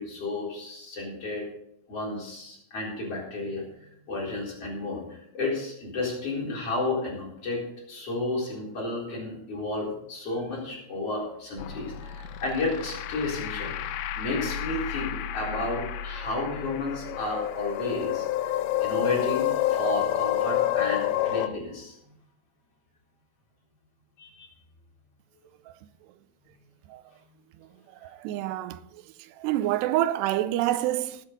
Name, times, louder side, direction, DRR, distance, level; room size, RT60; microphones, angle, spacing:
voice 1, 0.0-1.5 1.9-22.1 24.2-24.5, left 2 dB, 35° left, 4.8 m, -32 dB
sound 1, 11.6-21.5, left 12 dB, 80° left, 2.4 m, -29 dB
voice 2, 28.0-28.8 29.4-31.2, right 14 dB, 90° right, 2.8 m, -27 dB
19.0 x 8.5 x 3.9 m
omnidirectional pair, 4.7 m